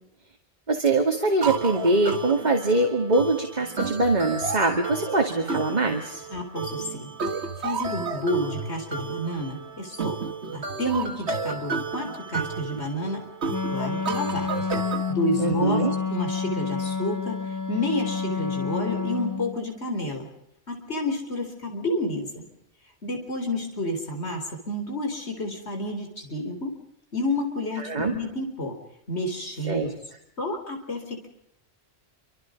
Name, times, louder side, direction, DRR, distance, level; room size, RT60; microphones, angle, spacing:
voice 1, 0.7-6.2 15.4-15.9 27.8-28.1 29.7-29.9, right 2 dB, 40° right, 3 dB, 2.4 m, -23 dB
sound 1, 1.4-15.1, right 4 dB, 80° right, 1.8 m, -32 dB
voice 2, 6.3-7.1 7.6-10.2 10.5-13.2 13.7-14.7 15.1-15.8 16.1-20.3 20.7-22.4 23.0-26.7 27.1-28.7 29.1-29.9 30.4-31.3, left 1 dB, 75° left, 4 dB, 4.5 m, -30 dB
Wind instrument woodwind instrument, 13.5-19.6, left 5 dB, 15° left, 1.4 m, -29 dB
27.5 x 26.0 x 5.3 m, 0.76 s
omnidirectional pair, 1.1 m